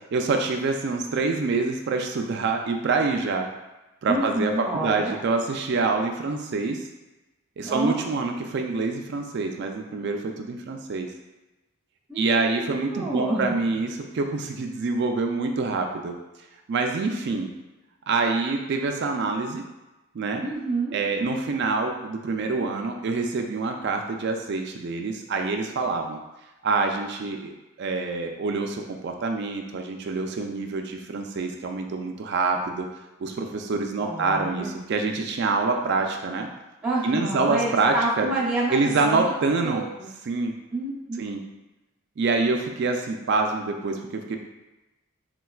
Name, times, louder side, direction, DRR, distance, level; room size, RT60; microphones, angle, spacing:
voice 1, 0.1-3.5 4.0-6.8 7.6-11.1 12.2-16.1 16.7-17.5 18.1-19.6 20.1-20.4 20.9-26.2 26.6-27.5 27.8-32.9 33.2-36.5 37.0-38.3 38.7-39.8 40.3-40.5 41.2-41.4 42.2-44.4, right 3 dB, 55° right, 4 dB, 0.3 m, -26 dB
voice 2, 4.1-5.2 7.6-8.0 12.1-13.8 20.4-21.0 34.0-34.8 36.8-39.3 39.6-39.9 40.7-41.2, right 2 dB, 5° right, -13 dB, 0.6 m, -28 dB
4.1 x 2.2 x 2.3 m, 1.0 s
head